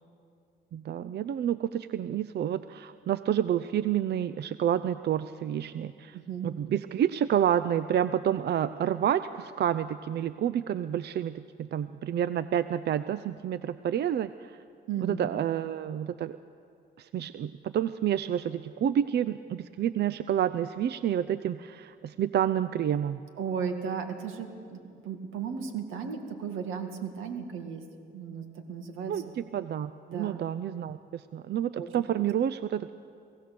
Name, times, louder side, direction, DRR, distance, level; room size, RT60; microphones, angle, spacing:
voice 1, 0.7-6.2 6.4-14.6 15.0-16.4 17.0-23.2 29.1-32.9, right 10 dB, 55° right, 13 dB, 0.6 m, -29 dB
voice 2, 6.1-6.5 14.9-15.3 23.4-27.8 28.1-29.1 30.1-30.4 31.8-31.9, right 6 dB, 90° right, 5 dB, 2.2 m, -35 dB
23.0 x 17.0 x 6.9 m, 2.3 s
cardioid pair, 90°, 20 cm